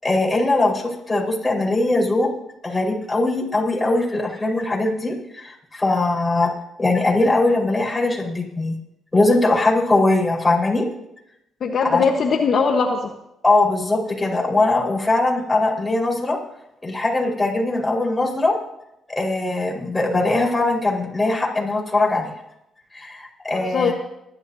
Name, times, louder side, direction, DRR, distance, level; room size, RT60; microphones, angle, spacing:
voice 1, 0.0-2.3 2.6-6.5 6.8-8.7 9.1-10.9 11.8-12.0 13.4-16.4 16.8-18.6 19.1-22.3 22.9-23.9, left 2 dB, 15° left, -2 dB, 4.7 m, -20 dB
voice 2, 11.6-13.1 23.6-23.9, left 5 dB, 60° left, 2 dB, 1.2 m, -20 dB
28.5 x 12.0 x 2.8 m, 0.83 s
cardioid pair, 90°, 0 cm